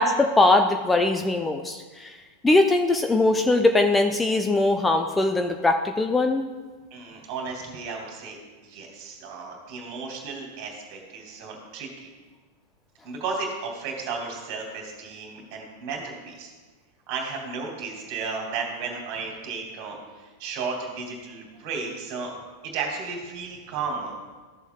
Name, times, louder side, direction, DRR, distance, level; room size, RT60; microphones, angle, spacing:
voice 1, 0.0-2.1 2.4-6.5, left 2 dB, 10° left, 5 dB, 0.5 m, -21 dB
voice 2, 6.9-8.4 8.6-12.1 13.0-16.5 17.1-22.3 22.6-24.1, right 4 dB, 45° right, 0 dB, 2.3 m, -34 dB
13.5 x 7.0 x 2.3 m, 1.4 s
figure-of-eight pair, 90°, 0 cm